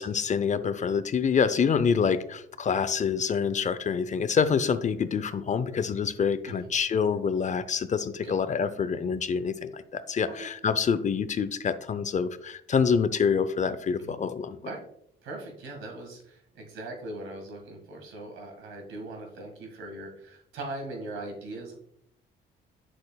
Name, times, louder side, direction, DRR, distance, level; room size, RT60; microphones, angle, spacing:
voice 1, 0.0-14.6, left 6 dB, 40° left, 13 dB, 0.5 m, -26 dB
voice 2, 15.2-21.7, right 2 dB, 85° right, 2 dB, 1.8 m, -40 dB
7.7 x 6.4 x 2.3 m, 0.70 s
cardioid pair, 90°, 20 cm